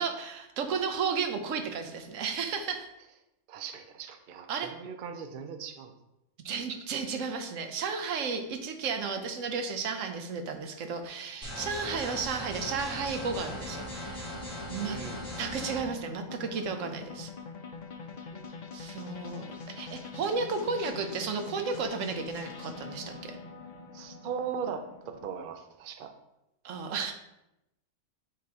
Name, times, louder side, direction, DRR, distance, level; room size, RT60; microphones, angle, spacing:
voice 1, 0.0-2.9 4.5-4.7 6.4-14.3 14.7-15.0 15.4-17.3 18.7-23.4 26.6-27.1, right 5 dB, 85° right, 6 dB, 1.1 m, -33 dB
voice 2, 3.5-5.9 11.8-12.0 14.8-15.3 18.1-18.8 23.9-24.8 25.2-26.1, right 7 dB, 55° right, 6 dB, 0.7 m, -39 dB
sound 1, 11.0-25.3, left 5 dB, 50° left, 0.6 m, -44 dB
sound 2, 11.4-15.8, equal, 5° right, 2.2 m, -39 dB
9.4 x 3.9 x 2.8 m, 0.88 s
omnidirectional pair, 1.3 m